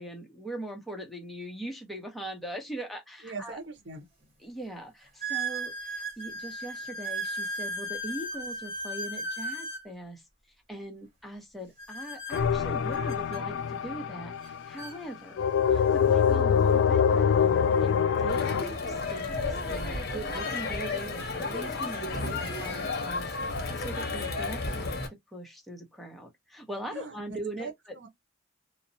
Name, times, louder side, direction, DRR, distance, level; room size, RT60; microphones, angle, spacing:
voice 1, 0.0-3.6 4.4-10.2 10.7-15.4 15.7-25.0 25.3-28.0, right 1 dB, ahead, 0.6 m, -41 dB
voice 2, 3.2-4.1 26.9-28.1, right 3 dB, 65° right, 0.9 m, -41 dB
sound 1, 3.5-3.6 4.2-4.3 5.2-9.9 11.8-13.4 14.4-14.5 14.8-15.0 15.8-15.9 18.1-18.2 20.2-20.3 21.1-21.4 21.9-22.9, right 1 dB, 30° right, 1.1 m, -36 dB
sound 2, 12.3-14.7 15.4-18.6, left 7 dB, 80° left, 0.3 m, -24 dB
Crowd, 18.3-25.1, left 3 dB, 55° left, 0.8 m, -32 dB
2.7 x 2.0 x 2.6 m
head